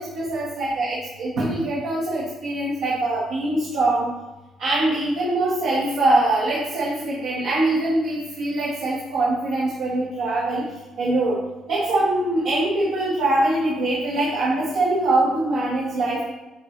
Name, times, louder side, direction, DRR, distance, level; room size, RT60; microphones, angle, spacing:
voice 1, 0.0-4.1 4.6-10.6 11.0-11.4 11.7-16.2, right 2 dB, 75° right, -7 dB, 1.8 m, -23 dB
9.3 x 4.5 x 3.4 m, 1.1 s
cardioid pair, 175°, 0 cm